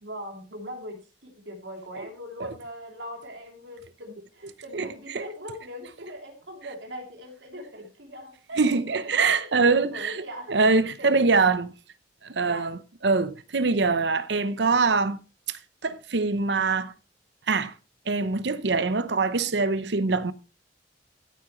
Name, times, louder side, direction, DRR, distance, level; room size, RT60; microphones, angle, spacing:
voice 1, 0.0-11.5 12.4-12.7, equal, 85° right, 3.1 m, -40 dB
voice 2, 8.6-10.1 10.5-11.7 12.2-15.2 15.5-16.9 17.5-17.7 18.1-20.3, right 4 dB, 65° right, 0.8 m, -24 dB
14.0 x 8.5 x 3.1 m
head